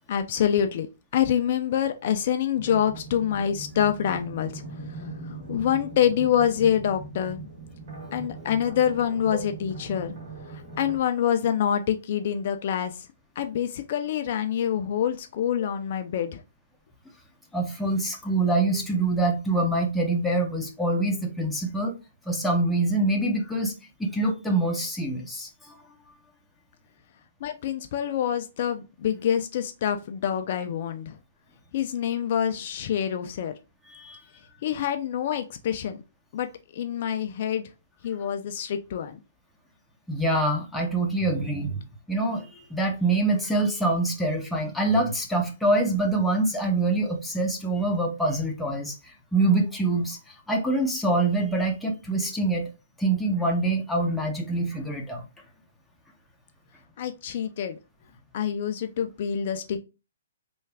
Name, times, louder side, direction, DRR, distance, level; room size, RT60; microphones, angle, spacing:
voice 1, 0.1-0.9 1.1-7.5 8.1-10.1 10.5-13.1 13.4-16.4 27.4-31.2 31.7-33.5 34.6-36.0 36.3-37.7 38.0-39.2 57.0-57.8 58.3-59.8, left 9 dB, 50° left, 0.4 m, -26 dB
sound 1, 2.5-11.0, right 3 dB, 50° right, 1.3 m, -40 dB
voice 2, 17.5-21.9 22.3-23.7 24.0-25.5 33.9-34.2 40.1-41.8 42.1-49.0 49.3-50.2 50.5-52.7 53.0-55.2, right 2 dB, 5° left, 0.6 m, -25 dB
3.2 x 2.3 x 3.3 m
hypercardioid pair, 145°, 0 cm